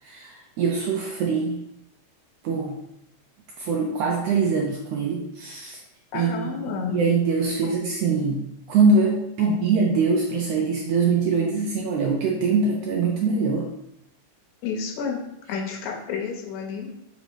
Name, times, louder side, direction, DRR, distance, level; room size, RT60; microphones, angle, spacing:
voice 1, 0.0-1.6 2.4-2.8 3.6-5.8 6.1-13.7, right 4 dB, 85° right, 0 dB, 1.4 m, -23 dB
voice 2, 6.1-7.0 9.4-9.5 14.6-15.2 15.5-16.9, left 6 dB, 75° left, 0 dB, 2.0 m, -30 dB
5.3 x 2.1 x 4.6 m, 0.82 s
omnidirectional pair, 3.4 m